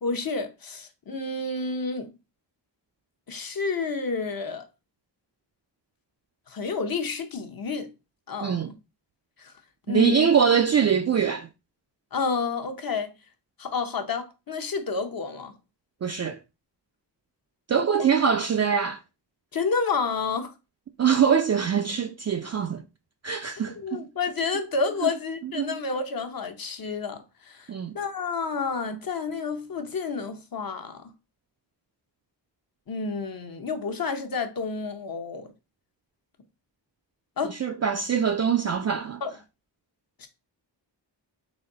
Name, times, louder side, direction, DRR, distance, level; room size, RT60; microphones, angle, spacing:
voice 1, 0.0-2.1 3.3-4.7 6.5-7.9 8.3-8.6 9.4-9.5 9.9-10.3 12.1-13.1 13.6-15.5 19.5-20.5 23.8-27.7 27.9-31.0 32.9-35.5 37.4-37.6 39.2-39.3 40.2-40.3, left 4 dB, 50° left, 0.9 m, -30 dB
voice 2, 9.9-11.5 16.0-16.4 17.7-19.0 21.0-22.8 23.2-24.1 25.4-25.8 27.7-28.0 37.5-39.2, right 7 dB, 40° right, 0.4 m, -23 dB
4.1 x 3.0 x 3.8 m
wide cardioid pair, 75°, 44 cm